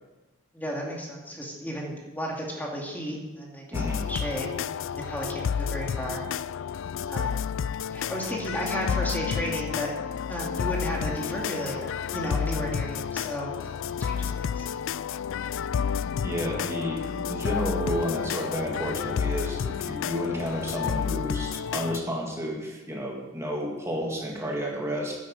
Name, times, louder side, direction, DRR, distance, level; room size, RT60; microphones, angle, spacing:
voice 1, 0.5-6.3 7.1-7.4 7.9-10.0 10.2-14.7, equal, 10° left, -2 dB, 2.3 m, -34 dB
sound 1, 3.7-22.0, left 7 dB, 65° left, 0.3 m, -30 dB
voice 2, 3.7-4.0 16.2-25.2, equal, 15° right, -2 dB, 2.3 m, -31 dB
11.5 x 10.5 x 6.6 m, 1.1 s
head